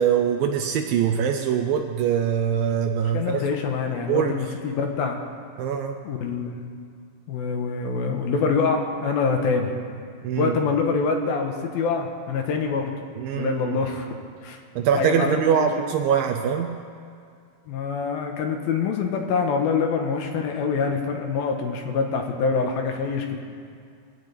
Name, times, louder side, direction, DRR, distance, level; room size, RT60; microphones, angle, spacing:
voice 1, 0.0-3.4 4.1-4.3 5.6-6.0 10.2-10.5 13.2-13.8 14.8-16.8, right 8 dB, 80° right, 5 dB, 2.2 m, -23 dB
voice 2, 3.1-5.2 6.0-6.7 7.3-9.7 10.4-12.9 13.3-14.1 14.4-14.6 14.9-15.7 17.7-23.4, left 5 dB, 75° left, 3 dB, 2.8 m, -25 dB
22.0 x 16.5 x 3.5 m, 2.3 s
omnidirectional pair, 4.6 m